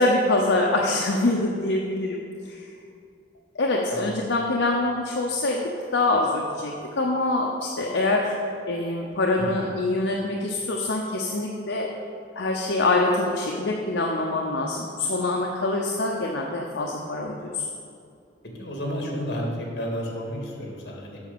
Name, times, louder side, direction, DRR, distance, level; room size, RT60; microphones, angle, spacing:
voice 1, 0.0-2.2 2.4-2.7 3.6-5.6 5.9-8.3 8.7-11.9 12.4-17.7, left 2 dB, 75° left, -1 dB, 0.8 m, -24 dB
voice 2, 18.6-21.2, equal, 60° left, -1 dB, 2.2 m, -31 dB
8.1 x 6.4 x 6.9 m, 2.4 s
head